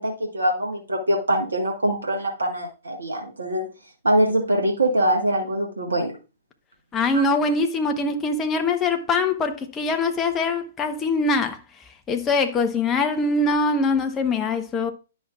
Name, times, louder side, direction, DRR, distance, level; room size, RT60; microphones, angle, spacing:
voice 1, 0.0-3.7 4.0-6.1 7.1-7.2, right 1 dB, 70° right, 1.5 m, -23 dB
voice 2, 6.9-11.6 12.1-14.9, left 3 dB, 20° left, 1.0 m, -23 dB
10.5 x 6.1 x 2.4 m
figure-of-eight pair, 115°, 0 cm